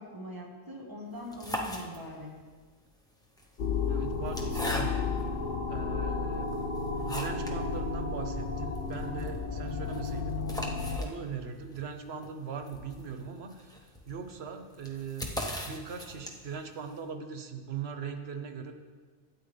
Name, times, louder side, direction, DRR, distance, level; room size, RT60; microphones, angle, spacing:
voice 1, 0.0-2.3, equal, 20° right, -1 dB, 1.5 m, -42 dB
sound 1, 1.1-2.4 3.2-5.3 5.9-6.0 6.5-7.6 7.9-8.0 8.3-8.4 8.7-16.6, left 1 dB, 5° left, 0.8 m, -40 dB
sound 2, 3.6-11.0, left 4 dB, 50° left, 0.9 m, -32 dB
voice 2, 3.9-5.2 5.7-6.5 6.9-10.4 11.0-15.3 15.7-18.7, right 6 dB, 70° right, 6 dB, 1.1 m, -40 dB
12.5 x 9.0 x 3.3 m, 1.4 s
omnidirectional pair, 1.1 m